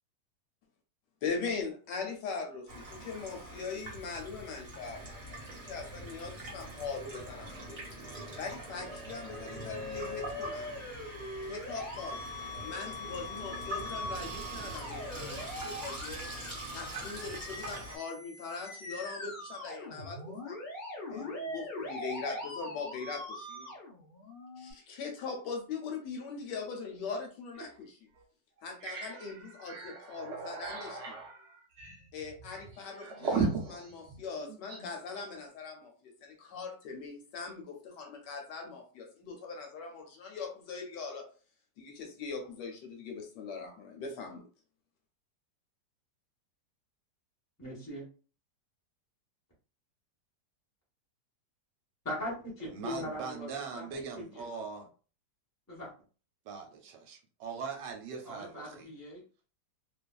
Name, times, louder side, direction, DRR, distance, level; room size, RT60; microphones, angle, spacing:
voice 1, 1.2-7.9 8.4-10.7 11.4-12.2 12.6-16.3 16.7-20.6 21.1-23.7 24.6-28.1 28.6-31.2 32.1-41.3 41.8-44.5, left 5 dB, 75° left, 2 dB, 1.3 m, -41 dB
Water tap faucet / Sink (filling or washing), 2.7-18.0, right 1 dB, 35° right, 0.9 m, -44 dB
Musical instrument, 8.8-24.7, left 1 dB, 55° left, 0.5 m, -42 dB
sound 1, 27.5-27.7 28.2-28.3 28.6-34.9, right 4 dB, 65° right, 0.7 m, -37 dB
voice 2, 47.6-48.1 52.0-54.5 55.7-55.9 58.2-59.2, left 1 dB, 15° left, -4 dB, 0.7 m, -40 dB
voice 3, 52.7-54.9 56.4-58.9, right 5 dB, 80° right, 3 dB, 1.3 m, -41 dB
2.9 x 2.4 x 2.3 m, 0.37 s
omnidirectional pair, 1.9 m